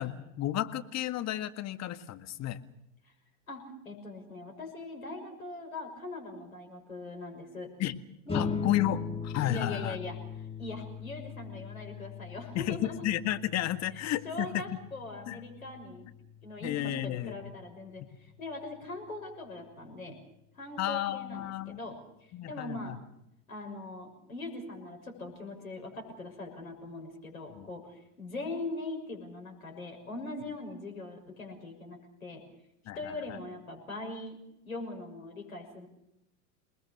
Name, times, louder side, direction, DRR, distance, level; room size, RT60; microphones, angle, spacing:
voice 1, 0.0-2.6 7.8-8.0 8.3-10.0 12.5-14.6 15.3-15.4 16.6-17.5 20.8-21.8 22.3-23.0 27.5-27.7 32.9-33.4, left 13 dB, 40° left, 9 dB, 1.9 m, -32 dB
voice 2, 3.5-7.7 8.3-8.5 9.5-13.0 13.9-16.1 16.4-20.2 20.6-22.9 23.5-32.4 32.9-34.4 34.6-35.9, left 2 dB, 90° left, 3 dB, 6.3 m, -41 dB
sound 1, 8.3-19.1, left 5 dB, 15° left, 1.8 m, -40 dB
28.0 x 20.5 x 6.7 m, 0.84 s
hypercardioid pair, 85°, 41 cm